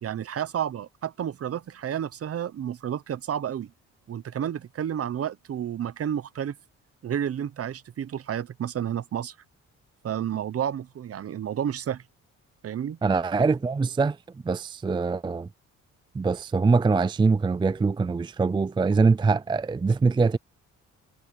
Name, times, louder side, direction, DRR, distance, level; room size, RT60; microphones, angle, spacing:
voice 1, 0.0-3.7 4.1-6.5 7.0-9.4 10.0-12.0 12.6-13.0, right 9 dB, 50° right, 1.0 m, -31 dB
voice 2, 13.0-14.2 14.4-15.5 16.1-20.4, right 4 dB, 15° right, 0.4 m, -23 dB
cardioid pair, 90°, 30 cm